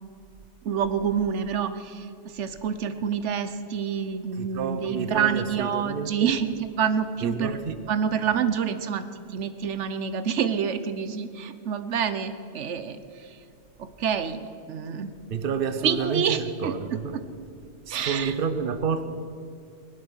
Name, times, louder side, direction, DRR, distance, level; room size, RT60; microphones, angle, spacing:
voice 1, 0.6-7.6 7.9-13.4 13.8-15.1 15.8-16.7 17.9-18.3, right 7 dB, 85° right, 1.2 m, -27 dB
voice 2, 4.3-6.3 7.2-7.8 15.3-17.2 17.8-19.1, right 6 dB, 55° right, 1.0 m, -29 dB
18.5 x 12.0 x 6.3 m
omnidirectional pair, 1.2 m